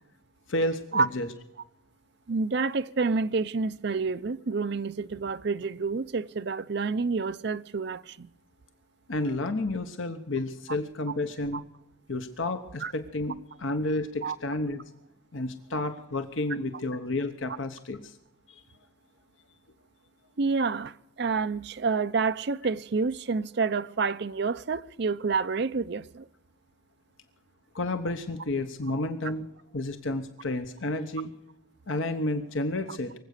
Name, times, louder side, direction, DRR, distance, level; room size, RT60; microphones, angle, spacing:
voice 1, 0.5-1.3 9.1-11.6 12.1-13.3 13.6-14.8 15.3-18.1 18.5-18.6 27.7-29.5 29.7-31.3 31.9-33.1, left 2 dB, 70° left, 1.0 m, -31 dB
voice 2, 2.3-8.3 11.5-11.6 12.8-12.9 14.2-14.4 20.4-26.3, right 4 dB, 55° right, 0.5 m, -28 dB
24.5 x 8.2 x 6.6 m
head